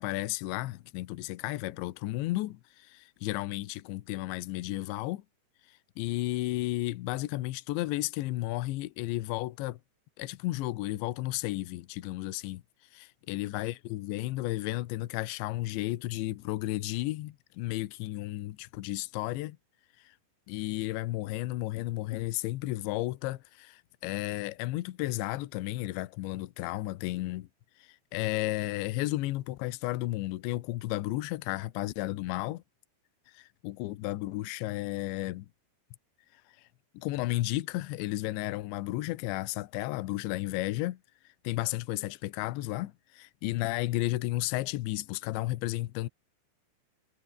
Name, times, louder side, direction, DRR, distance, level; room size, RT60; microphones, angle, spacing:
voice 1, 0.0-5.2 5.7-9.8 10.2-12.6 12.9-19.6 20.0-20.1 20.5-27.5 27.8-32.6 33.3-35.5 36.6-36.7 36.9-41.0 41.4-46.1, left 17 dB, 75° left, 3.2 m, -33 dB
omnidirectional pair, 5.6 m